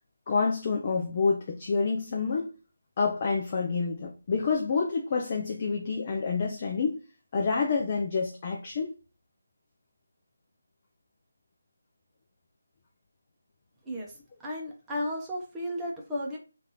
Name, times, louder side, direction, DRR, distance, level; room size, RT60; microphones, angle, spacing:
voice 1, 0.3-2.5 3.0-7.0 7.3-8.9, left 4 dB, 30° left, 0.6 m, -28 dB
voice 2, 13.8-16.4, left 1 dB, 5° right, 0.8 m, -34 dB
3.3 x 2.6 x 4.1 m
figure-of-eight pair, 165°, 0 cm